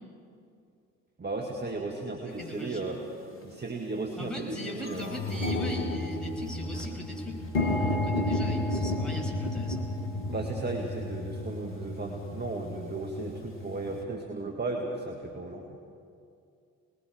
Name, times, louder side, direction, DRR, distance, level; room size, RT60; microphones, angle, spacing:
voice 1, 1.2-3.0 3.4-5.2 10.3-15.7, right 2 dB, 25° right, 0 dB, 1.9 m, -35 dB
voice 2, 2.2-2.8 4.2-9.9, left 1 dB, ahead, -2 dB, 6.0 m, -39 dB
sound 1, 2.5-2.6 3.3-3.6 4.0-4.1 4.3-14.0, left 2 dB, 80° left, 1.6 m, -32 dB
26.5 x 20.0 x 5.1 m, 2.4 s
figure-of-eight pair, 45°, 39 cm